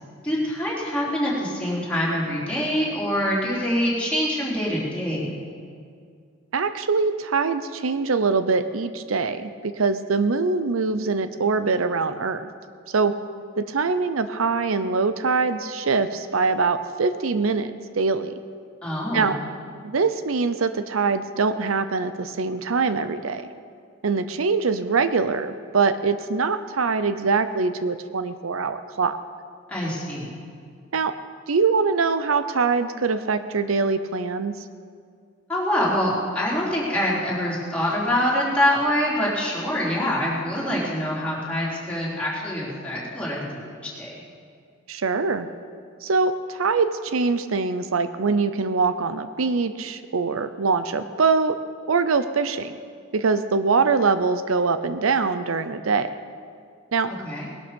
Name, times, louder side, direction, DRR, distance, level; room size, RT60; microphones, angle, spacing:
voice 1, 0.2-5.4 18.8-19.3 29.7-30.3 35.5-44.1 57.1-57.4, left 1 dB, 5° left, -7 dB, 4.0 m, -25 dB
voice 2, 6.5-12.5 12.9-13.2 13.6-18.3 19.1-19.4 19.8-23.5 24.0-29.2 30.9-31.1 31.5-34.6 44.9-45.5 46.0-51.6 51.9-52.8 53.1-56.1 56.9-57.1, right 4 dB, 90° right, 11 dB, 0.7 m, -23 dB
20.0 x 12.0 x 5.3 m, 2.2 s
head